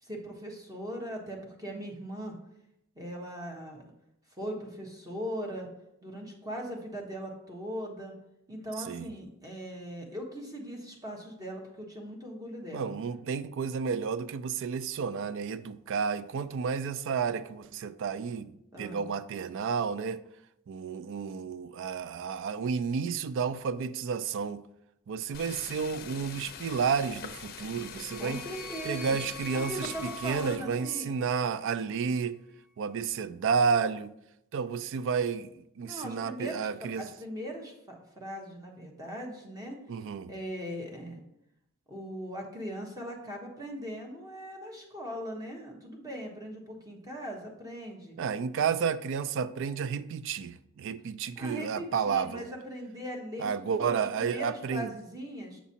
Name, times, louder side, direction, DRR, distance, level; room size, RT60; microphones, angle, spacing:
voice 1, 0.0-2.4 2.9-3.8 4.4-5.7 6.0-8.1 8.5-12.9 18.7-19.0 28.1-29.2 29.5-31.1 35.8-36.7 36.9-39.8 40.3-41.2 41.9-48.2 51.4-53.5 53.8-55.6, equal, 15° right, 1.1 m, -39 dB
voice 2, 12.7-20.2 20.7-24.6 25.1-28.4 28.9-32.4 32.8-34.1 34.5-35.5 35.8-37.1 39.9-40.3 48.2-52.5 53.4-54.9, right 6 dB, 65° right, 0.3 m, -31 dB
sound 1, 25.3-30.6, left 7 dB, 45° left, 0.5 m, -44 dB
sound 2, 27.4-31.8, left 1 dB, ahead, 1.2 m, -45 dB
7.3 x 5.9 x 2.8 m
head